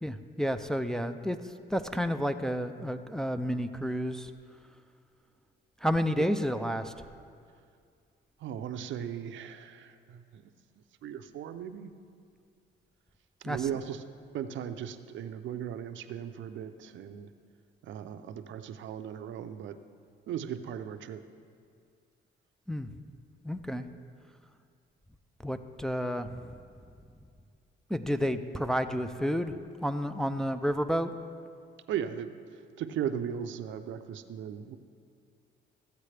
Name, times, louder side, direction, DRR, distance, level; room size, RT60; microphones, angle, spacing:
voice 1, 0.0-1.4 1.7-4.3 5.8-6.9 13.4-13.6 22.7-22.9 23.4-23.9 25.4-26.3 27.9-29.6 29.8-31.1, equal, 5° left, 7 dB, 0.4 m, -30 dB
voice 2, 8.4-10.5 11.0-11.9 13.4-14.0 14.3-17.3 17.8-19.8 20.3-21.3 31.9-32.4 32.8-34.8, right 9 dB, 75° right, 10 dB, 0.6 m, -37 dB
14.5 x 8.1 x 3.3 m, 2.3 s
cardioid pair, 90°, 20 cm